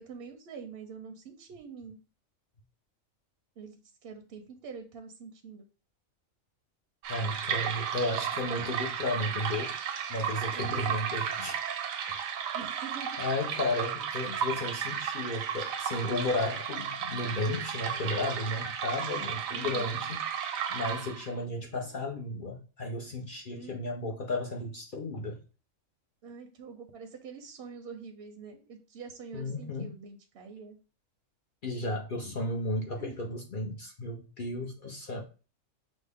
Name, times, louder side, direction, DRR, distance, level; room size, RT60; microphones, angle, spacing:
voice 1, 0.0-2.0 3.6-3.7 4.0-5.7 10.5-10.9 12.5-13.2 13.5-13.6 19.5-19.9 23.5-24.0 26.2-30.8 33.0-33.1, right 5 dB, 60° right, 0.7 m, -45 dB
sound 1, 7.0-21.4, right 8 dB, 80° right, 1.0 m, -34 dB
voice 2, 7.1-9.8 10.1-11.6 12.1-12.2 13.2-20.2 20.7-25.4 29.3-30.0 31.6-35.2, left 2 dB, 55° left, 0.6 m, -34 dB
6.1 x 2.1 x 3.4 m
omnidirectional pair, 1.4 m